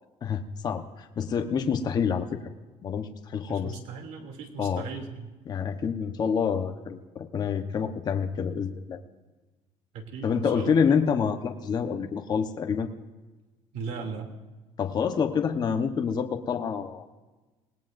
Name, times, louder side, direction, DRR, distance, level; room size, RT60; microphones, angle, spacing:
voice 1, 0.2-2.4 2.8-3.8 4.6-4.9 5.5-9.0 10.2-12.9 14.8-17.0, left 6 dB, 35° left, 4 dB, 1.1 m, -27 dB
voice 2, 3.5-5.3 9.9-10.7 13.7-14.3, right 5 dB, 80° right, 3 dB, 2.9 m, -37 dB
27.5 x 18.5 x 2.7 m, 1.2 s
cardioid pair, 145°, 12 cm